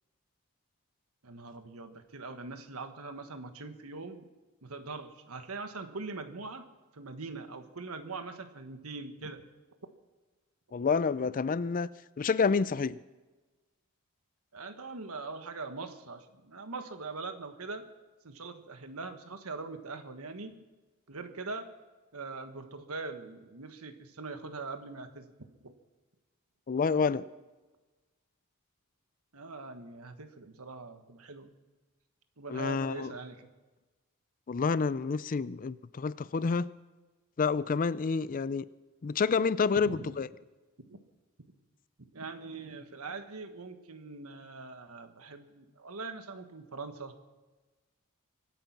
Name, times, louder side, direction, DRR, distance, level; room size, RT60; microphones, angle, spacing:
voice 1, 1.2-4.3 4.6-6.7 6.9-9.4 14.5-17.9 18.2-20.5 21.1-21.7 22.1-25.3 25.6-25.7 29.3-31.5 32.4-33.5 39.7-40.1 40.9-41.0 42.1-47.2, right 3 dB, 80° right, 1.5 m, -42 dB
voice 2, 10.7-11.9 12.2-13.0 26.7-27.3 32.5-33.1 34.5-36.7 37.4-38.7 39.0-40.3, left 5 dB, 40° left, 0.4 m, -28 dB
24.5 x 9.2 x 6.0 m
head